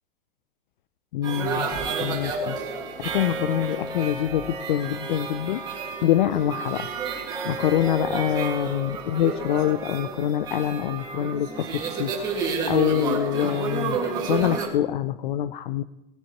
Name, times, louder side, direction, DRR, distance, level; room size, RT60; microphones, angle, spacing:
voice 1, 1.1-1.7 2.0-2.6 3.0-5.6 6.0-6.9 7.4-15.8, left 11 dB, 50° left, 14 dB, 0.4 m, -25 dB
sound 1, 1.2-14.7, right 5 dB, 10° right, 1.9 m, -30 dB
19.5 x 10.5 x 3.0 m, 0.96 s
supercardioid pair, 170°, 32 cm